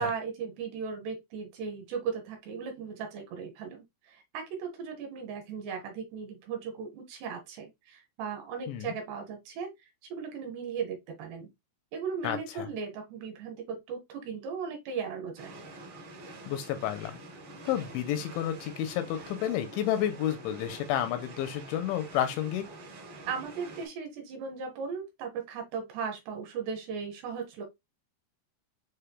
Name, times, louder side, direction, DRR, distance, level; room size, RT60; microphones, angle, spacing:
voice 1, 0.0-9.7 10.1-11.5 11.9-15.6 23.3-27.7, right 6 dB, 70° right, 2.8 m, -37 dB
sound 1, 15.4-23.9, right 2 dB, 55° right, 1.4 m, -46 dB
voice 2, 16.5-17.2 17.7-22.6, left 11 dB, 85° left, 2.9 m, -30 dB
6.8 x 3.3 x 2.2 m
omnidirectional pair, 5.5 m